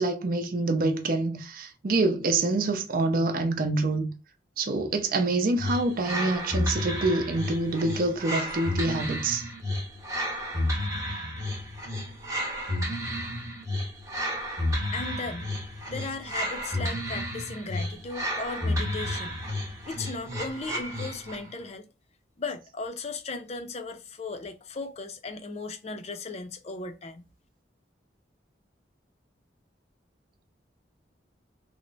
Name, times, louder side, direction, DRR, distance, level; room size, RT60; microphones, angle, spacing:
voice 1, 0.0-4.1 4.6-9.4, right 2 dB, 50° right, 0.5 m, -26 dB
sound 1, 5.6-21.5, left 1 dB, 15° right, 0.8 m, -32 dB
voice 2, 14.9-15.5 15.9-19.4 19.8-21.9 22.4-27.2, left 3 dB, 35° left, 0.4 m, -36 dB
3.2 x 2.1 x 3.8 m
head